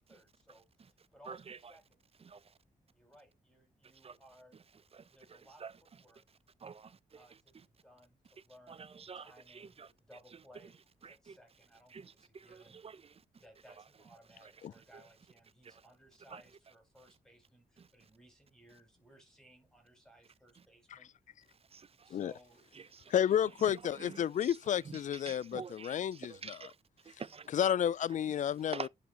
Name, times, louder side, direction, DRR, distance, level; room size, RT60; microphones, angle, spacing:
voice 1, 0.0-2.0 2.9-4.6 5.1-6.2 7.1-12.8 13.4-21.1 22.0-22.7, equal, 5° left, 5.2 m, -61 dB
voice 2, 1.3-1.6 2.2-2.4 4.0-4.1 4.9-5.7 6.6-7.0 8.7-9.9 11.0-11.4 11.9-13.2 15.6-15.8 16.3-16.4 21.7-22.1 22.8-23.1 23.7-24.6 24.9-25.0 25.3-26.8 27.0-27.5 28.7-28.9, right 6 dB, 40° right, 0.6 m, -47 dB
voice 3, 23.1-26.7 27.5-28.9, left 9 dB, 55° left, 0.4 m, -31 dB
10.5 x 5.0 x 3.0 m
cardioid pair, 60°, 15 cm